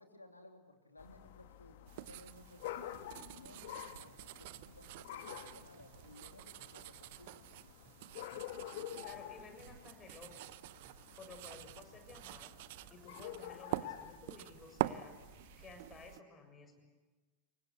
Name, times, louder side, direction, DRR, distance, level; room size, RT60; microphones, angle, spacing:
voice 1, 0.0-1.8 2.0-3.0 3.3-7.4, left 1 dB, 80° left, 5 dB, 3.2 m, -58 dB
sound 1, 1.0-15.7, left 12 dB, 55° left, 1.5 m, -50 dB
sound 2, 1.9-16.2, right 16 dB, 50° right, 0.8 m, -46 dB
sound 3, 4.1-14.1, right 10 dB, 30° right, 1.7 m, -69 dB
voice 2, 9.0-10.5 11.2-12.5 12.9-15.2 15.6-16.8, left 3 dB, 20° left, 5 dB, 7.2 m, -54 dB
28.0 x 24.0 x 8.4 m, 1.3 s
figure-of-eight pair, 90°, 0 cm